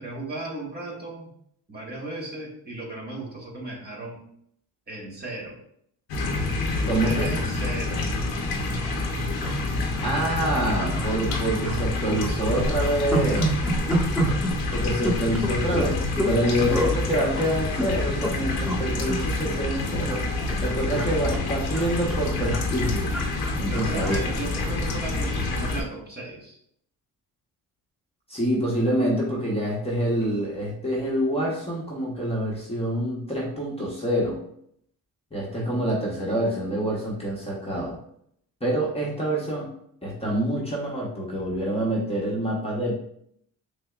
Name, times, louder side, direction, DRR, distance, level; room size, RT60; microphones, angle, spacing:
voice 1, 0.0-1.3 1.7-4.2 4.9-5.6 6.7-8.1 16.5-17.1 23.6-26.6, right 2 dB, 25° right, -3 dB, 1.5 m, -35 dB
sound 1, 6.1-25.8, left 2 dB, 85° left, 0.8 m, -28 dB
voice 2, 6.9-7.3 10.0-13.6 14.7-23.1 23.6-24.2 28.3-34.4 35.3-38.0 38.6-39.7 40.0-42.9, right 1 dB, 15° left, -5 dB, 1.0 m, -26 dB
sound 2, 8.4-8.5 8.7-8.9 9.4-10.1 10.4-10.6 10.9-11.8 12.1-16.4 16.7-16.9 17.5-18.3 18.6-18.8 19.1-20.2 20.5-25.0 25.4-25.6, equal, ahead, 1.2 m, -29 dB
6.1 x 2.1 x 2.4 m, 0.69 s
cardioid pair, 85°, 37 cm